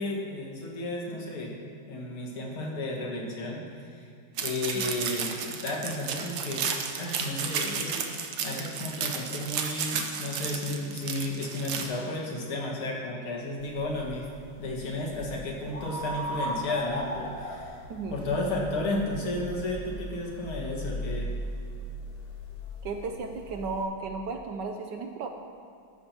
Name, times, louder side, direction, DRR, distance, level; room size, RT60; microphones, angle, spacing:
voice 1, 0.0-1.6 1.9-4.1 4.4-6.7 7.0-8.0 8.4-14.3 14.6-17.8 18.1-21.3, left 2 dB, 80° left, -2 dB, 2.6 m, -33 dB
sound 1, 4.4-11.8, right 6 dB, 90° right, 1.8 m, -32 dB
sound 2, 13.6-23.8, equal, 30° left, 1.8 m, -38 dB
voice 2, 17.9-18.2 22.8-25.3, right 4 dB, 70° right, 5 dB, 1.1 m, -34 dB
13.5 x 12.5 x 2.9 m, 2.4 s
omnidirectional pair, 2.3 m